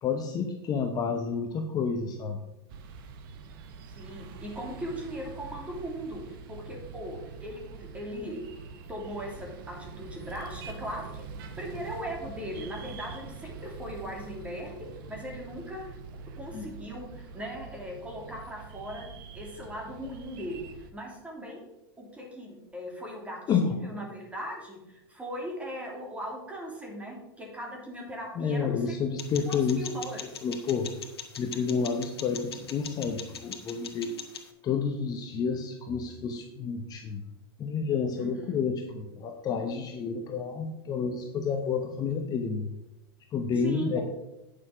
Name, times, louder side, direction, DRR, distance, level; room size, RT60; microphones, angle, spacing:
voice 1, 0.0-2.4 16.5-16.7 23.5-23.8 28.4-29.9 30.4-30.9 31.4-34.1 34.6-37.2 37.6-42.7 43.3-44.0, left 5 dB, 30° left, 5 dB, 1.0 m, -30 dB
sound 1, 2.7-20.9, right 5 dB, 60° right, 1.1 m, -44 dB
voice 2, 3.9-8.4 8.9-11.3 11.6-15.8 16.4-19.1 19.3-21.7 22.0-28.9 29.5-30.4 38.1-38.6 43.6-43.9, equal, 10° right, -1 dB, 3.0 m, -39 dB
sound 2, 29.2-34.5, left 7 dB, 90° left, 1.2 m, -42 dB
9.3 x 6.7 x 5.0 m, 0.93 s
hypercardioid pair, 115°, 13 cm